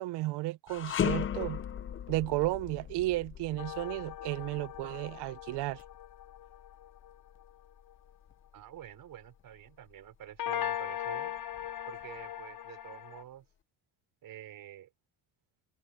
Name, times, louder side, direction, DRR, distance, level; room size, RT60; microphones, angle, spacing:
voice 1, 0.0-1.6 2.1-5.8, right 18 dB, 70° right, 0.9 m, -33 dB
sound 1, 0.7-9.9 10.3-10.5 11.4-12.3, left 9 dB, 30° left, 0.7 m, -39 dB
sound 2, 3.6-7.1 10.4-13.2, left 11 dB, 55° left, 6.0 m, -39 dB
voice 2, 8.5-11.3 11.9-13.5 14.2-14.9, right 11 dB, 55° right, 5.3 m, -49 dB
cardioid pair, 135°, 41 cm